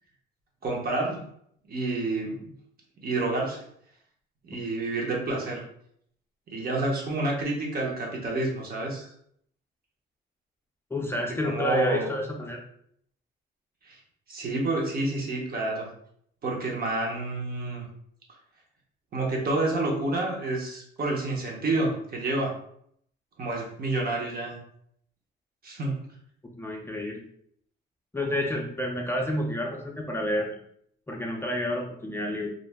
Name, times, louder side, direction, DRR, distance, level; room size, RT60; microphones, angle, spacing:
voice 1, 0.6-1.2 1.7-2.4 3.0-3.6 4.4-5.6 6.5-9.1 11.4-12.1 13.9-14.0 14.3-15.9 16.4-17.9 19.1-22.5 23.4-24.6 25.6-26.0, right 2 dB, 50° right, -1 dB, 1.0 m, -29 dB
voice 2, 10.9-12.6 26.6-27.2 28.1-30.5 31.1-32.5, left 1 dB, 10° left, -1 dB, 0.5 m, -29 dB
2.6 x 2.0 x 3.4 m, 0.68 s
cardioid pair, 90°, 20 cm